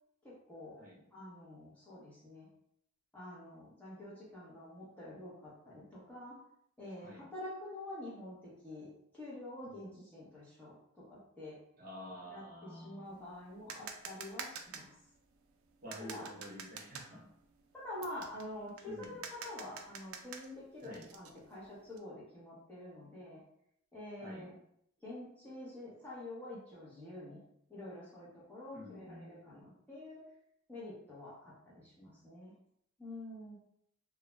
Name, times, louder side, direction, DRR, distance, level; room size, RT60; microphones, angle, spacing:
voice 1, 0.2-0.8 1.1-2.5 3.1-6.4 6.8-11.6 12.3-12.4 12.7-14.9 16.1-16.3 17.7-23.4 23.9-24.5 25.0-27.4 27.7-30.2 30.7-32.6 33.0-33.6, left 1 dB, 5° left, -8 dB, 0.7 m, -47 dB
voice 2, 9.6-10.0 11.8-13.1 15.8-17.3 18.8-19.2 20.8-21.1 24.2-24.5 28.7-29.3, equal, 40° right, -5 dB, 0.8 m, -49 dB
sound 1, 13.1-22.0, right 6 dB, 80° right, 0.3 m, -48 dB
2.4 x 2.0 x 3.0 m, 0.72 s
head